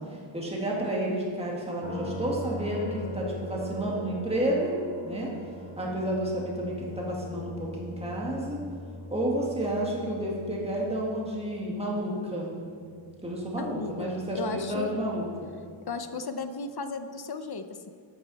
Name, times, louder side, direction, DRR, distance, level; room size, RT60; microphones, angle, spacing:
voice 1, 0.0-4.7 5.0-5.3 5.8-8.6 9.1-12.5 13.2-15.5, right 1 dB, 15° right, -3 dB, 2.0 m, -31 dB
sound 1, 1.8-15.7, left 1 dB, 80° left, 2.1 m, -42 dB
voice 2, 13.6-15.0 15.9-17.9, left 4 dB, 50° left, 9 dB, 0.7 m, -35 dB
12.5 x 8.9 x 4.2 m, 2.2 s
wide cardioid pair, 105°, 47 cm